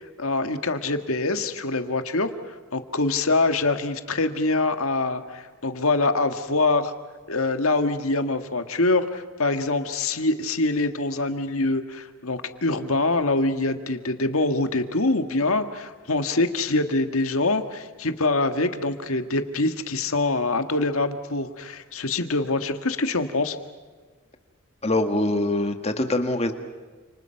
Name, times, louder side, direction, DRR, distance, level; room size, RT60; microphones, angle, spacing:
voice 1, 0.0-6.9 7.3-23.6, left 2 dB, 75° left, 8 dB, 1.8 m, -24 dB
voice 2, 24.8-26.5, left 1 dB, 30° left, 6 dB, 1.9 m, -23 dB
29.5 x 28.0 x 5.8 m, 1.4 s
head